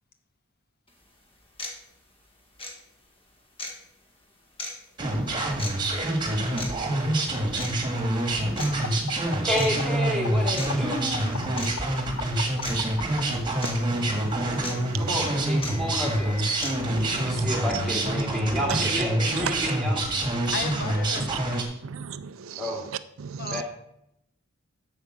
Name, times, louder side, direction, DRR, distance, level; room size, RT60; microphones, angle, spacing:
sound 1, 0.9-1.0 1.6-1.8 2.6-2.7 3.6-3.7 4.6-4.7 5.6-5.7 6.6-6.7 7.6-7.7 8.6-8.7 9.6-9.7 10.6-10.7 11.6-11.7 12.6-12.7 13.6-13.7 14.6-14.7 15.6-15.7 16.6-16.7, left 2 dB, 25° left, 1.8 m, -34 dB
sound 2, 5.0-21.6, right 1 dB, 20° right, 1.8 m, -26 dB
sound 3, 8.6-13.2 14.4-16.6, left 5 dB, 80° left, 0.7 m, -37 dB
voice 1, 9.4-11.6 15.0-16.4 16.9-20.1 22.6-22.8 23.5-23.6, equal, ahead, 2.4 m, -30 dB
voice 2, 13.6-15.7 16.9-17.8 18.7-19.0 19.4-19.7 20.5-20.6 21.8-23.6, right 7 dB, 70° right, 0.5 m, -36 dB
voice 3, 20.5-21.7 23.4-23.6, left 5 dB, 45° left, 0.8 m, -35 dB
8.1 x 7.1 x 6.6 m
head